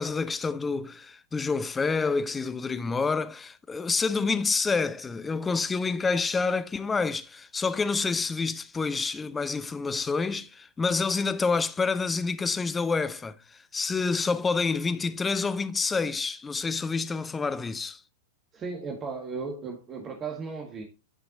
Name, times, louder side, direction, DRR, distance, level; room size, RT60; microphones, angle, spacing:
voice 1, 0.0-18.0, left 4 dB, 15° left, 0.7 m, -28 dB
voice 2, 18.5-20.8, right 4 dB, 25° right, 1.6 m, -35 dB
11.0 x 5.2 x 3.8 m
figure-of-eight pair, 95°, 0 cm